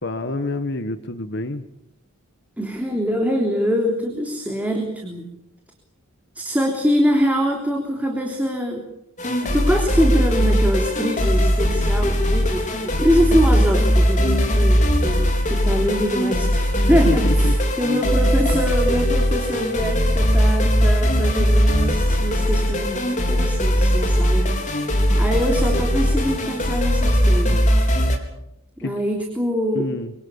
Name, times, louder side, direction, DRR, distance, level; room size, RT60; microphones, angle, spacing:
voice 1, 0.0-1.7 17.0-17.5 28.8-28.9 29.7-30.1, left 2 dB, 50° left, 9 dB, 1.4 m, -27 dB
voice 2, 2.6-5.3 6.3-8.8 9.4-17.2 17.8-27.6 28.8-29.9, equal, 5° right, 1 dB, 3.4 m, -23 dB
sound 1, 9.2-28.2, equal, 35° left, 4.2 m, -19 dB
25.5 x 25.0 x 7.1 m, 0.80 s
head